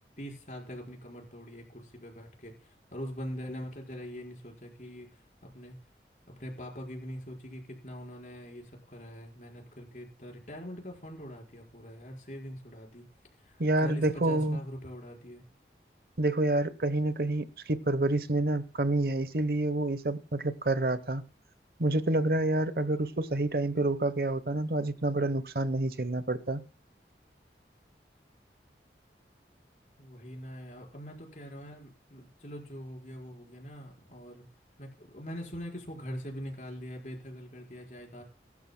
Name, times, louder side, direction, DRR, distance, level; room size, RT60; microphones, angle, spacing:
voice 1, 0.2-5.8 6.3-13.0 13.4-15.4 30.0-34.4 34.8-38.2, equal, 45° left, 4.7 m, -43 dB
voice 2, 13.6-14.6 16.2-21.2 21.8-26.6, right 2 dB, 60° right, 1.0 m, -28 dB
23.5 x 12.5 x 2.2 m
head